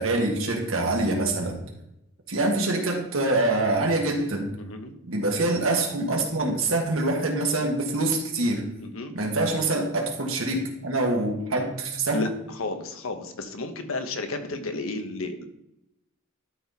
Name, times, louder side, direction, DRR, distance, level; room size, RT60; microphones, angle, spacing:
voice 1, 0.0-1.5 2.3-4.5 5.0-8.7 9.1-12.2, right 2 dB, 75° right, 1 dB, 1.9 m, -25 dB
voice 2, 4.6-4.9 8.8-9.2 12.1-12.3 12.6-15.4, left 2 dB, 80° left, 7 dB, 1.1 m, -32 dB
12.5 x 4.1 x 4.1 m, 0.85 s
head